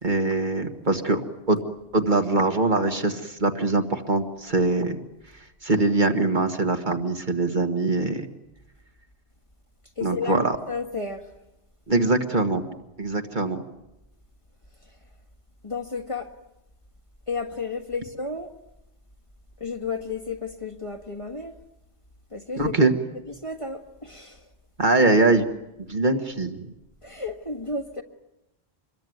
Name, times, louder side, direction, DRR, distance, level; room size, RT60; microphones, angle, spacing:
voice 1, 0.0-1.2 1.5-1.6 1.9-5.0 5.6-8.3 10.0-10.6 11.9-12.6 13.0-13.6 22.6-22.9 24.8-25.4 25.9-26.7, right 2 dB, 45° right, 1.7 m, -22 dB
voice 2, 10.0-11.3 14.8-15.0 15.6-16.3 17.3-18.5 19.6-21.6 22.3-22.7 23.4-24.5 27.0-28.0, left 4 dB, 30° left, 1.7 m, -32 dB
26.0 x 22.0 x 9.3 m
omnidirectional pair, 1.1 m